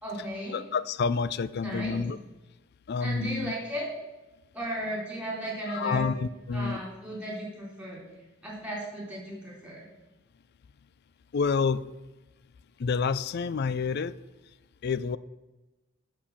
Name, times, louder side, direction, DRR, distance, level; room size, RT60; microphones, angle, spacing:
voice 1, 0.0-0.6 1.6-2.0 3.0-3.8 4.5-6.0 6.5-8.0 8.4-9.8, right 1 dB, 5° right, -4 dB, 3.5 m, -35 dB
voice 2, 0.5-2.2 2.9-3.5 5.7-6.8 11.3-11.8 12.8-14.1 14.8-15.2, left 5 dB, 55° left, 17 dB, 0.4 m, -28 dB
8.0 x 6.6 x 7.2 m, 1.1 s
head